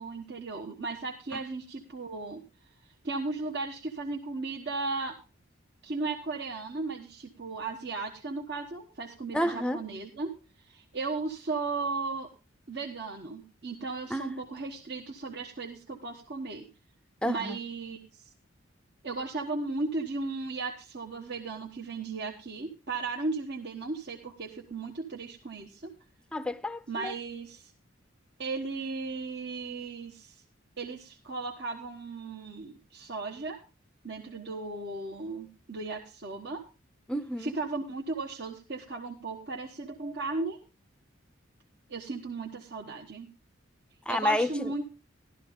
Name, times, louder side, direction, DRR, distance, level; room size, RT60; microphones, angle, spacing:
voice 1, 0.0-2.4 3.0-5.2 5.8-10.3 10.6-12.3 12.7-16.7 17.2-18.3 19.0-25.9 26.9-27.7 28.4-30.4 30.8-33.6 34.0-36.6 37.4-40.6 41.9-43.3 44.1-44.9, right 3 dB, 55° right, 1.3 m, -36 dB
voice 2, 9.3-9.8 14.1-14.4 17.2-17.6 26.3-27.1 37.1-37.5 44.1-44.7, left 1 dB, 5° left, 0.6 m, -30 dB
13.5 x 12.5 x 3.6 m
head